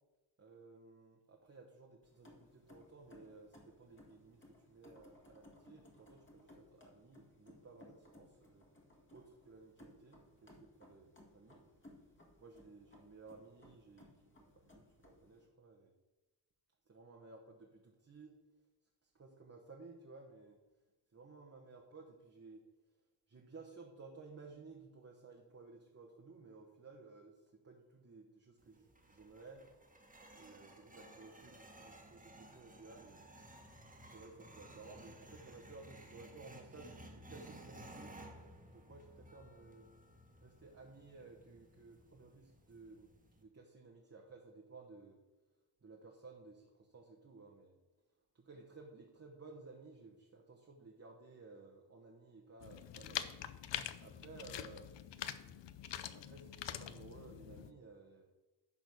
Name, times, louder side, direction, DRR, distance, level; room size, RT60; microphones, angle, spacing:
voice 1, 0.4-8.7 9.1-11.6 12.4-15.9 16.9-18.3 19.0-20.6 21.1-22.6 23.3-29.7 30.3-33.3 34.0-38.4 38.7-39.9 40.4-43.1 43.4-45.2 45.8-47.8 48.3-53.3 54.0-54.9 56.1-58.2, right 3 dB, 35° right, -1 dB, 1.2 m, -56 dB
sound 1, 2.0-15.5, left 1 dB, 25° left, 1.9 m, -62 dB
sound 2, 28.6-43.4, right 1 dB, 20° right, 1.6 m, -57 dB
sound 3, 52.6-57.7, left 10 dB, 80° left, 0.6 m, -45 dB
11.0 x 4.0 x 6.4 m, 1.1 s
cardioid pair, 85°, 43 cm